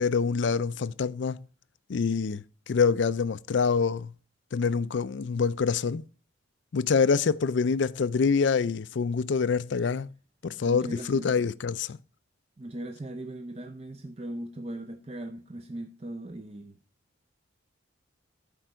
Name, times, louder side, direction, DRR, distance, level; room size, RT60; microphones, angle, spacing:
voice 1, 0.0-1.4 1.9-4.1 4.5-6.0 6.7-10.1 10.4-12.0, left 5 dB, 70° left, 0.4 m, -26 dB
voice 2, 10.6-11.4 12.6-16.8, right 1 dB, 30° right, 0.5 m, -39 dB
12.0 x 4.5 x 5.0 m
head